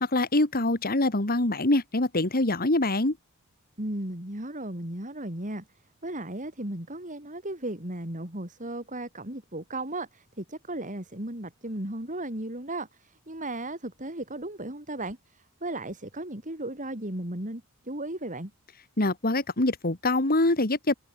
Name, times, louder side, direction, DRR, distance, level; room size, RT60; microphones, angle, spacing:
voice 1, 0.0-3.2 19.0-20.9, left 2 dB, 40° left, 2.2 m, -24 dB
voice 2, 3.8-5.6 6.0-18.5, right 1 dB, 35° right, 4.8 m, -35 dB
head